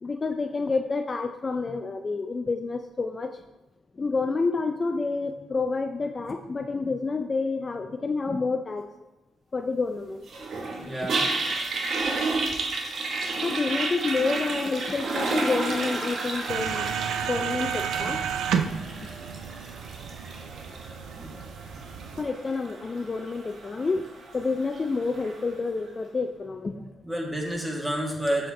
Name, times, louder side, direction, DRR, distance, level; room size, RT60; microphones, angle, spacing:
voice 1, 0.0-3.4 4.0-8.8 9.5-10.3 13.4-16.9 17.2-18.2 19.0-19.1 22.2-24.0 24.3-26.9, left 4 dB, 40° left, 6 dB, 0.5 m, -29 dB
Toilet flush, 10.3-25.5, right 3 dB, 60° right, 1.2 m, -32 dB
voice 2, 10.8-11.3 21.2-21.4 27.0-28.5, right 1 dB, 15° right, -1 dB, 2.0 m, -29 dB
sound 1, 16.5-22.2, right 7 dB, 80° right, 0.4 m, -31 dB
7.7 x 4.4 x 3.8 m, 0.98 s
supercardioid pair, 50°, 0 cm